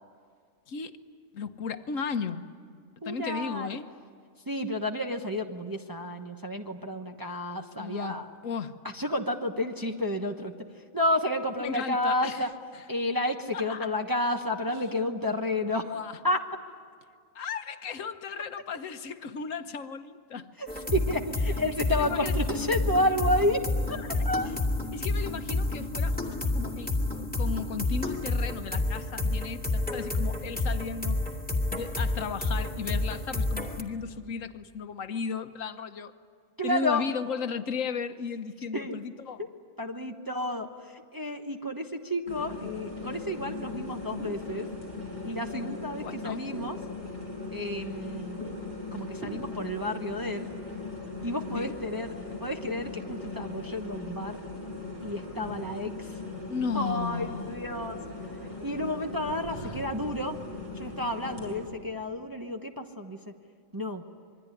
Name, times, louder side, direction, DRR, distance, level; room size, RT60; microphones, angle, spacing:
voice 1, 0.7-1.0 1.3-2.5 3.0-3.9 7.8-8.8 11.6-12.5 12.7-12.9 13.5-13.9 14.7-14.8 15.8-16.2 17.3-20.5 21.9-22.3 23.9-24.5 24.9-31.2 31.7-36.1 36.6-39.5 46.0-46.4 51.5-51.7 56.5-57.6 59.6-59.8, left 6 dB, 70° left, 9 dB, 1.4 m, -35 dB
voice 2, 3.0-3.7 4.5-8.3 8.9-10.5 10.9-12.5 12.9-16.0 16.2-16.4 20.6-23.6 24.2-24.5 36.6-37.0 38.7-39.0 39.4-39.5 39.8-44.7 45.2-46.8 47.5-48.4 48.9-50.5 51.2-54.3 55.0-56.1 56.7-58.0 58.6-60.3 60.8-63.2 63.7-64.0, left 1 dB, 15° right, 3 dB, 1.1 m, -31 dB
sound 1, 20.7-33.8, left 2 dB, 5° left, 2.3 m, -29 dB
sound 2, 42.3-61.6, left 3 dB, 45° right, 7.0 m, -39 dB
26.5 x 22.5 x 9.9 m, 2.1 s
omnidirectional pair, 1.4 m